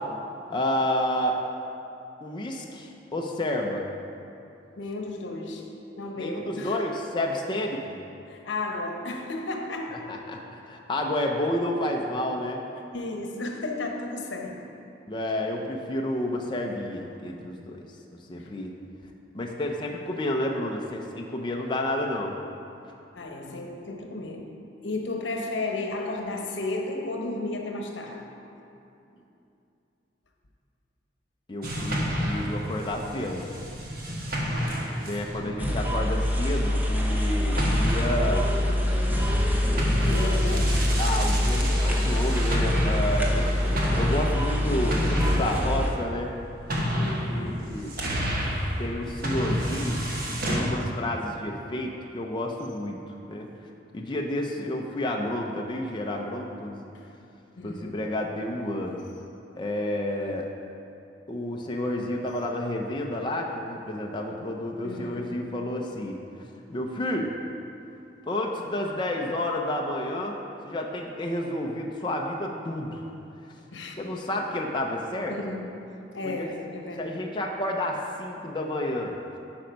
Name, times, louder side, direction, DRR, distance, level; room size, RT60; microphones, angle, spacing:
voice 1, 0.5-1.4 2.2-3.9 6.2-8.0 10.1-12.6 15.1-17.9 18.3-18.7 19.3-22.4 31.5-33.5 35.0-38.6 39.7-40.4 41.0-43.5 44.0-46.3 47.3-47.9 48.8-53.0 53.3-53.5 53.9-56.8 57.6-59.0 59.6-60.5 61.3-66.2 66.7-67.3 68.3-70.4 70.6-73.0 74.0-75.4 76.2-76.5 77.0-79.2, left 1 dB, 25° left, 0.5 m, -30 dB
voice 2, 4.8-5.7 6.0-6.8 8.3-10.1 12.9-14.7 18.4-18.5 23.1-28.4 29.1-29.2 34.4-35.7 40.0-40.9 47.0-47.7 56.9-57.1 57.5-58.0 64.8-65.5 73.7-74.0 75.3-75.9 76.1-77.3, left 2 dB, 85° left, 0.9 m, -34 dB
sound 1, 31.6-37.2 37.5-50.6, equal, 50° right, 1.2 m, -30 dB
sound 2, 35.6-45.9, left 1 dB, 10° right, 0.8 m, -25 dB
8.7 x 5.3 x 5.1 m
head